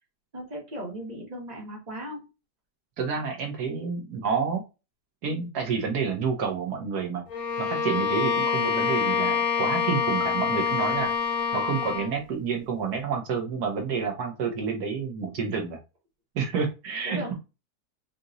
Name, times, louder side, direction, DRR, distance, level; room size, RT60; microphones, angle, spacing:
voice 1, 0.3-2.3 3.8-3.9 17.0-17.3, equal, 25° right, -1 dB, 1.6 m, -37 dB
voice 2, 3.0-4.6 5.2-7.2 7.6-11.1 11.5-15.8 16.3-17.3, right 5 dB, 80° right, 3 dB, 1.5 m, -29 dB
Bowed string instrument, 7.3-12.2, left 6 dB, 55° left, 1.8 m, -26 dB
5.2 x 2.9 x 2.5 m, 0.27 s
omnidirectional pair, 1.7 m